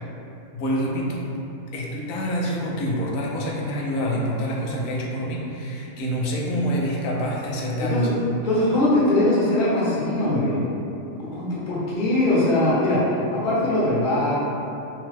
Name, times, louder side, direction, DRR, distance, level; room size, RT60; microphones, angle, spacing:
voice 1, 0.5-1.4 1.7-8.1, equal, 80° left, -3 dB, 1.0 m, -26 dB
voice 2, 7.8-10.7 11.2-13.0 13.3-14.4, left 1 dB, 45° left, -8 dB, 0.8 m, -21 dB
3.0 x 2.0 x 3.2 m, 2.7 s
omnidirectional pair, 1.4 m